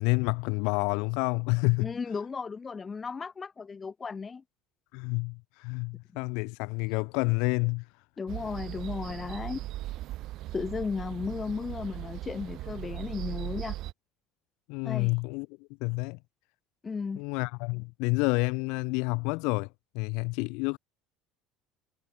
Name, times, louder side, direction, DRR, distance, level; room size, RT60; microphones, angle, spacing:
voice 1, 0.0-1.9 4.9-7.8 14.7-15.5 15.8-16.2 17.1-19.7 19.9-20.8, left 30 dB, 65° left, 1.2 m, -29 dB
voice 2, 1.8-4.4 8.2-9.6 10.5-13.8 14.8-15.1 16.8-17.2, left 5 dB, 30° left, 0.9 m, -35 dB
sound 1, 8.3-13.9, right 15 dB, 60° right, 1.1 m, -38 dB
hypercardioid pair, 65°, 0 cm